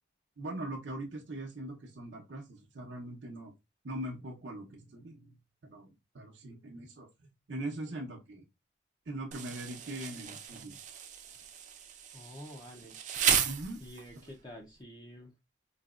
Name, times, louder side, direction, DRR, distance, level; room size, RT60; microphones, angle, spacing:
voice 1, 0.4-3.5 3.8-5.4 5.6-7.1 7.5-8.4 9.1-10.8 13.4-13.8 14.2-14.3, right 1 dB, 75° right, 0.7 m, -41 dB
Insect, 9.3-14.3, right 8 dB, 40° right, 0.4 m, -34 dB
voice 2, 12.1-13.0 13.8-15.3, equal, 20° left, 0.5 m, -48 dB
4.0 x 2.7 x 2.3 m
head